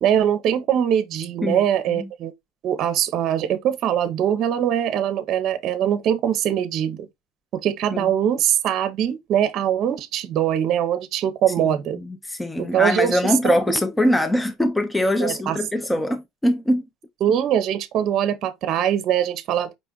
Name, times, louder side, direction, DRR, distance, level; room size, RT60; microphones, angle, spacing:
voice 1, 0.0-2.3 2.6-7.1 7.5-12.0 12.6-13.6 15.2-15.6 17.2-19.7, right 10 dB, 45° right, 0.7 m, -22 dB
voice 2, 1.4-2.1 7.9-8.1 11.6-16.8, left 1 dB, 10° left, 0.4 m, -23 dB
5.1 x 2.4 x 3.8 m
cardioid pair, 135°, 0 cm